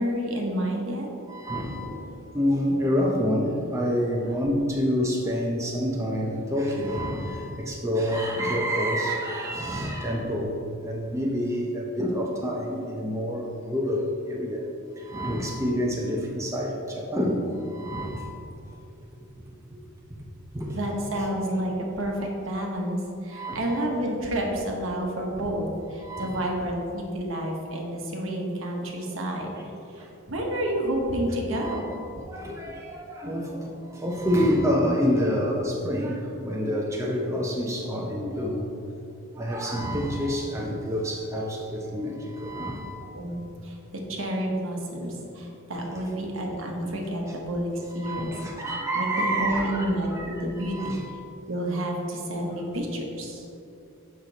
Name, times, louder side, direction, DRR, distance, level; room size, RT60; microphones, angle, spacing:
voice 1, 0.0-1.1 20.7-29.5 29.9-31.9 43.1-48.3 48.9-51.0 51.5-53.5, right 1 dB, 70° right, 0 dB, 1.0 m, -29 dB
voice 2, 1.3-2.1 2.3-14.6 15.0-18.3 20.1-20.2 20.5-20.8 23.3-23.8 26.0-26.4 31.5-32.0 32.3-38.7 39.3-43.0 46.8-46.9 47.3-47.4 48.0-49.8 50.1-51.1, equal, 15° right, -2 dB, 0.6 m, -28 dB
6.5 x 5.7 x 3.9 m, 2.7 s
head